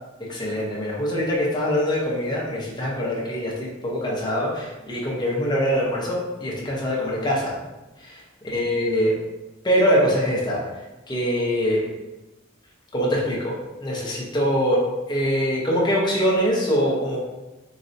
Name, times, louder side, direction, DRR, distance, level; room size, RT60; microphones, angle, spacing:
voice 1, 0.2-7.5 8.0-9.1 9.6-10.6 11.1-11.8 12.9-13.5 13.8-14.8 15.1-17.2, equal, 20° left, -4 dB, 0.7 m, -23 dB
4.0 x 2.2 x 2.6 m, 1.1 s
head